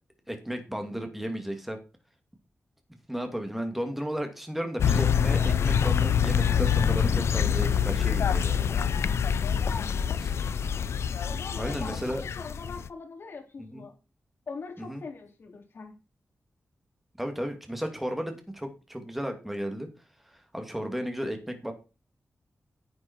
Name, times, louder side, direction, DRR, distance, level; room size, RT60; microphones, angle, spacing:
voice 1, 0.3-1.8 3.1-8.7 10.2-10.3 11.5-12.2 13.7-13.8 14.8-15.0 17.2-19.9 20.3-21.7, equal, 5° right, 5 dB, 2.5 m, -34 dB
sound 1, 4.8-12.9, left 7 dB, 85° left, 0.6 m, -25 dB
voice 2, 9.5-10.1 11.3-13.9 14.5-15.9, left 4 dB, 60° left, 2 dB, 3.6 m, -42 dB
10.5 x 8.7 x 4.6 m, 0.31 s
wide cardioid pair, 135°, 4 cm